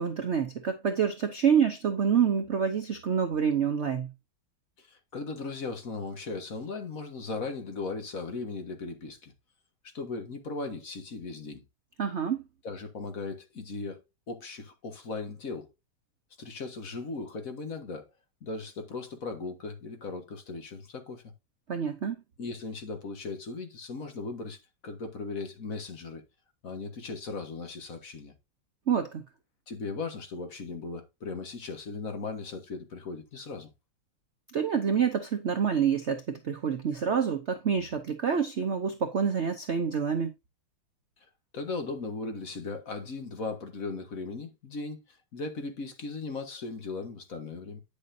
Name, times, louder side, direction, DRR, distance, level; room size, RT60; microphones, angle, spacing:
voice 1, 0.0-4.1 12.0-12.4 21.7-22.2 28.9-29.2 34.5-40.3, right 7 dB, 80° right, 0.6 m, -27 dB
voice 2, 4.8-9.3 9.8-11.6 12.6-14.0 14.3-15.7 16.4-18.1 18.4-21.2 22.4-26.2 26.6-28.3 29.7-33.7 41.5-47.8, left 3 dB, 45° left, 1.6 m, -37 dB
9.5 x 6.9 x 2.7 m
omnidirectional pair, 2.3 m